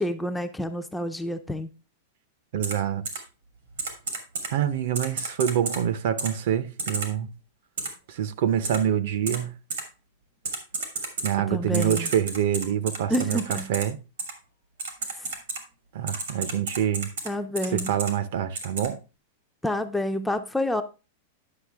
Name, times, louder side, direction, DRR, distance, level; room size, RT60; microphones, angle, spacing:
voice 1, 0.0-1.7 11.5-12.1 13.1-13.7 17.3-18.0 19.6-20.8, left 1 dB, 5° left, 0.4 m, -28 dB
voice 2, 2.5-3.0 4.5-7.3 8.1-9.5 11.2-13.4 13.7-14.0 15.9-17.1 17.7-19.0, right 9 dB, 55° right, 0.7 m, -26 dB
Typing, 2.6-2.7 3.0-3.2 3.8-4.5 4.9-5.8 6.2-6.3 6.8-7.1 7.8-7.9 8.6-8.8 9.3-9.4 9.7-9.8 10.4-11.3 11.7-13.8 14.2-14.3 14.8-15.6 16.1-17.3 17.6-18.1 18.5-18.9, right 4 dB, 80° right, 2.5 m, -31 dB
9.8 x 5.7 x 3.5 m
supercardioid pair, 170°, 0 cm